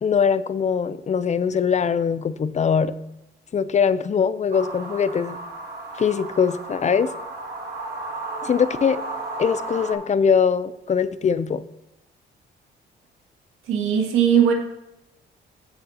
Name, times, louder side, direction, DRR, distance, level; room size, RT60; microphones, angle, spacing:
voice 1, 0.0-2.9 3.5-5.4 6.0-7.1 8.4-9.0 9.4-11.6, left 6 dB, 35° left, 0.6 m, -22 dB
sound 1, 4.5-9.9, right 2 dB, 55° right, 3.1 m, -34 dB
voice 2, 13.7-14.5, right 8 dB, 85° right, 2.0 m, -18 dB
15.0 x 6.6 x 2.9 m
cardioid pair, 90°, 20 cm